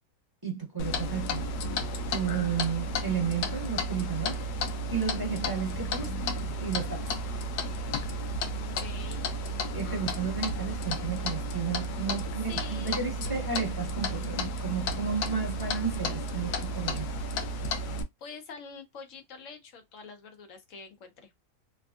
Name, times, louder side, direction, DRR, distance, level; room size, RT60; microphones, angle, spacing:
voice 1, 0.4-1.4 2.1-4.4 4.9-6.2 6.6-7.1 9.7-17.1, right 6 dB, 15° right, 1.3 m, -32 dB
Clock, 0.8-18.0, equal, 80° left, 1.1 m, -33 dB
voice 2, 8.6-9.2 12.5-13.0 18.2-21.3, left 5 dB, 60° left, 1.1 m, -45 dB
3.5 x 2.3 x 2.3 m
omnidirectional pair, 1.6 m